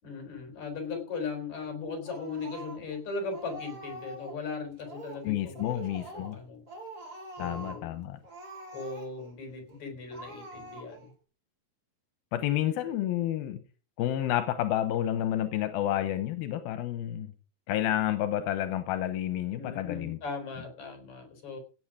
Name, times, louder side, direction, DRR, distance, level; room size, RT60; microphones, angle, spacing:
voice 1, 0.0-6.6 7.4-8.2 8.7-11.1 12.8-12.9 19.5-21.6, left 4 dB, 50° left, 5 dB, 5.1 m, -38 dB
Speech, 2.0-3.0 3.3-4.4 4.8-5.3 5.5-6.4 6.7-7.9 8.2-9.3 9.7-9.8 10.1-11.1, right 2 dB, 25° right, 5.1 m, -44 dB
voice 2, 5.2-6.4 7.4-8.2 12.3-13.6 14.0-17.3 17.7-20.2, left 12 dB, 85° left, 9 dB, 2.8 m, -30 dB
16.5 x 8.2 x 4.9 m, 0.35 s
omnidirectional pair, 4.2 m